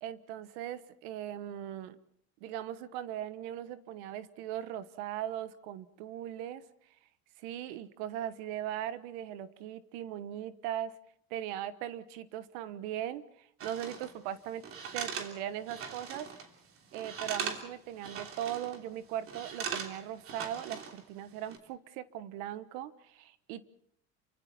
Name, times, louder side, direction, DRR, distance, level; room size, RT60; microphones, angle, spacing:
voice 1, 0.0-2.0 2.4-6.6 7.4-10.9 11.3-14.6 14.9-16.3 16.9-23.7, right 11 dB, 80° right, 13 dB, 1.4 m, -39 dB
sound 1, 13.6-14.1 14.6-16.5 16.8-17.7 18.0-18.8 19.3-21.0 21.3-21.6, right 6 dB, 40° right, 3.2 m, -40 dB
29.0 x 24.5 x 4.3 m, 0.66 s
cardioid pair, 140°, 33 cm